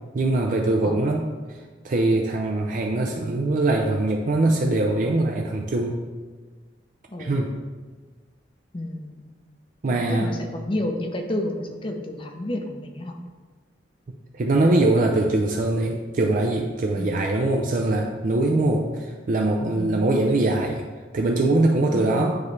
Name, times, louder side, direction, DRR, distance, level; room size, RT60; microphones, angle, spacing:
voice 1, 0.1-1.6 1.8-6.0 7.2-7.5 9.8-10.3 14.4-20.8 21.1-22.4, right 2 dB, 45° right, 1 dB, 0.4 m, -22 dB
voice 2, 7.1-7.6 8.7-9.2 9.9-13.2 17.0-17.1 18.5-18.7 19.8-20.0 21.9-22.1, left 1 dB, 30° left, 4 dB, 0.6 m, -31 dB
9.3 x 3.2 x 3.2 m, 1.4 s
head